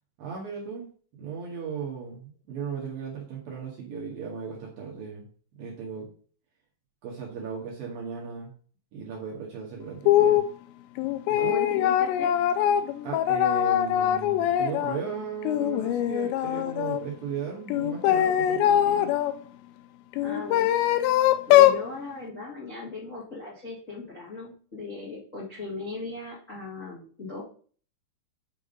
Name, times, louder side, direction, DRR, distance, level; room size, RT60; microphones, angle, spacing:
voice 1, 0.2-0.9 1.2-5.2 5.6-6.1 7.0-8.5 8.9-10.4 11.3-11.5 13.0-19.1, right 6 dB, 65° right, -3 dB, 2.5 m, -36 dB
sound 1, 10.1-10.5 11.0-15.0 15.4-17.0 17.7-19.3 20.1-21.8, left 11 dB, 85° left, 2.7 m, -22 dB
voice 2, 11.3-12.3 20.2-20.8 21.5-27.4, left 3 dB, 25° left, -6 dB, 1.7 m, -37 dB
9.1 x 3.5 x 5.3 m, 0.43 s
omnidirectional pair, 5.4 m